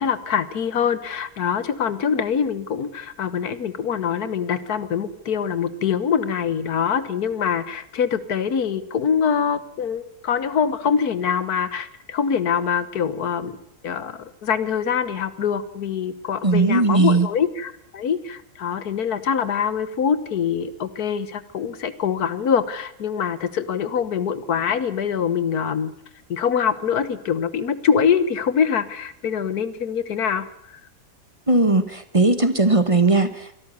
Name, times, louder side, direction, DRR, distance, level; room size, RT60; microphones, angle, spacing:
voice 1, 0.0-13.6 13.8-25.9 26.3-30.8, left 7 dB, 90° left, 15 dB, 1.7 m, -24 dB
voice 2, 16.4-17.3 31.5-33.6, right 3 dB, 25° right, 11 dB, 1.3 m, -18 dB
23.0 x 13.5 x 9.4 m, 0.80 s
omnidirectional pair, 1.6 m